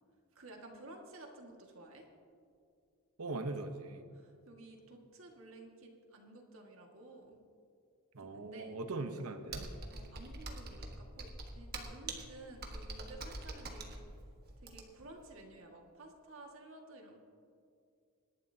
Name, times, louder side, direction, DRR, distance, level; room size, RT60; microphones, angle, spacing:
voice 1, 0.3-2.1 4.1-7.4 8.2-9.1 9.9-14.2 14.6-17.2, right 2 dB, 60° right, 1 dB, 1.9 m, -53 dB
voice 2, 3.2-4.0 8.1-9.7, right 2 dB, 80° right, 7 dB, 1.0 m, -40 dB
Computer keyboard, 9.5-15.1, right 2 dB, 45° right, 1.5 m, -44 dB
26.0 x 11.5 x 2.8 m, 2.4 s
head